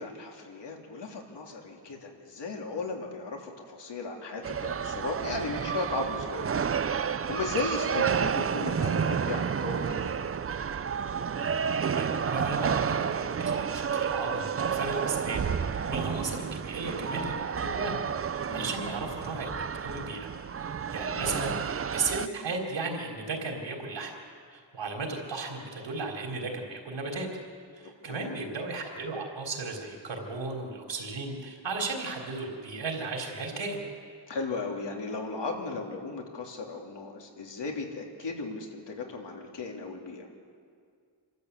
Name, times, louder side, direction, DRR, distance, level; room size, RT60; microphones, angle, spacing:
voice 1, 0.0-6.5 7.0-10.2 18.5-18.8 21.1-21.4 27.8-28.3 34.3-40.3, left 3 dB, 65° left, 1 dB, 3.3 m, -36 dB
sound 1, 4.4-22.3, right 7 dB, 30° right, 0.5 m, -30 dB
voice 2, 12.0-19.5 19.8-20.3 20.9-24.1 24.5-27.3 27.7-33.8, right 3 dB, 75° right, 1 dB, 4.1 m, -35 dB
27.5 x 13.5 x 8.3 m, 2.2 s
wide cardioid pair, 150°, 44 cm